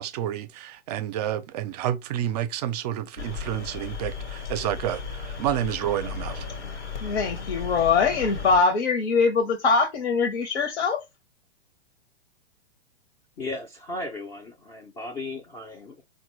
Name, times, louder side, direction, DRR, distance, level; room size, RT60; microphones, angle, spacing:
voice 1, 0.0-6.4, right 11 dB, 40° right, 0.5 m, -29 dB
sound 1, 3.2-8.6, left 5 dB, 85° left, 1.1 m, -35 dB
voice 2, 7.0-11.0, left 4 dB, 65° left, 0.8 m, -22 dB
voice 3, 13.4-16.0, left 2 dB, 15° left, 0.4 m, -36 dB
3.9 x 2.2 x 3.0 m
hypercardioid pair, 120°, 34 cm